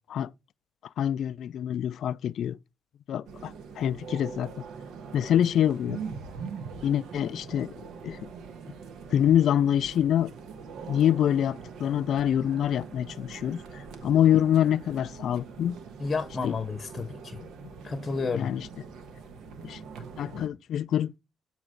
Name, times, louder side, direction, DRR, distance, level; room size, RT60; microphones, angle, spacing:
voice 1, 1.0-2.6 3.1-4.5 5.1-6.0 6.8-8.3 9.1-10.3 10.9-15.8 16.4-16.5 18.3-18.7 19.6-19.8 20.2-21.2, left 10 dB, 70° left, 0.3 m, -26 dB
sound 1, 3.3-20.5, right 5 dB, 80° right, 1.1 m, -43 dB
voice 2, 16.0-17.4 17.8-18.5, left 4 dB, 35° left, 0.8 m, -31 dB
8.6 x 3.0 x 6.3 m
cardioid pair, 90°, 0 cm